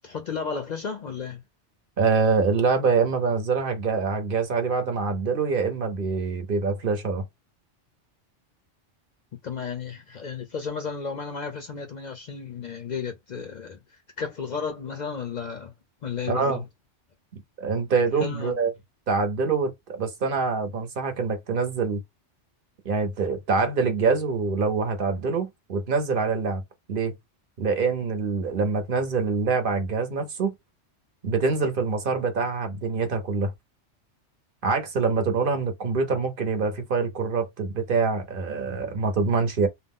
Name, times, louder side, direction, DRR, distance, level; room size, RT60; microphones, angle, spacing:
voice 1, 0.0-1.4 9.4-15.7 16.0-16.7 18.1-18.6, left 6 dB, 60° left, 0.5 m, -33 dB
voice 2, 2.0-7.2 16.3-16.6 17.6-18.7 19.1-22.0 22.8-26.6 26.9-27.1 27.6-30.5 31.2-33.5 34.6-39.7, right 4 dB, 55° right, 0.8 m, -25 dB
2.6 x 2.1 x 3.5 m
omnidirectional pair, 1.2 m